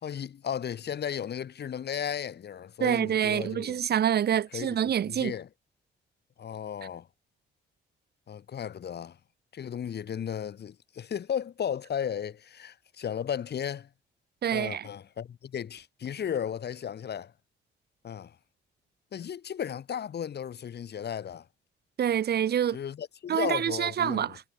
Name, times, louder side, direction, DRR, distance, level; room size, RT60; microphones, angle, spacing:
voice 1, 0.0-3.8 4.5-5.5 6.4-7.1 8.3-9.2 9.5-13.9 14.5-17.3 18.0-18.4 19.1-21.5 22.7-24.4, left 8 dB, 55° left, 3.6 m, -35 dB
voice 2, 2.8-5.3 14.4-14.9 22.0-22.8 23.3-24.4, right 9 dB, 55° right, 1.2 m, -26 dB
cardioid pair, 90°, 20 cm